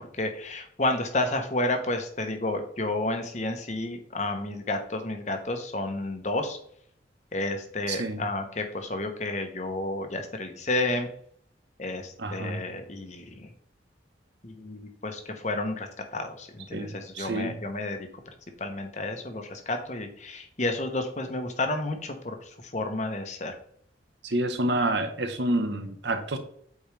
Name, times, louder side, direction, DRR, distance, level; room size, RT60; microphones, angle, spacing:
voice 1, 0.2-6.6 7.3-11.1 11.8-13.5 14.4-18.1 18.6-22.3 22.7-23.6, left 2 dB, 40° left, 6 dB, 1.0 m, -31 dB
voice 2, 7.9-8.2 12.2-12.6 16.7-17.5 24.2-26.4, right 1 dB, 70° right, 8 dB, 0.9 m, -28 dB
8.4 x 4.3 x 3.3 m, 0.64 s
head